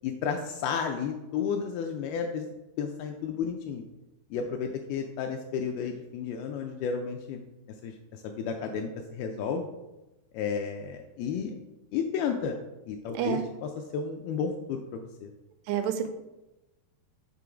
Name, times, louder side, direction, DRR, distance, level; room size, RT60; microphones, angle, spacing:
voice 1, 0.0-2.5 2.8-3.8 4.3-7.4 7.8-9.7 10.3-11.6 11.9-12.6 12.9-15.3, left 6 dB, 85° left, 4 dB, 2.2 m, -32 dB
voice 2, 15.7-16.1, right 9 dB, 85° right, 8 dB, 2.7 m, -28 dB
7.0 x 3.7 x 4.8 m, 1.0 s
omnidirectional pair, 4.8 m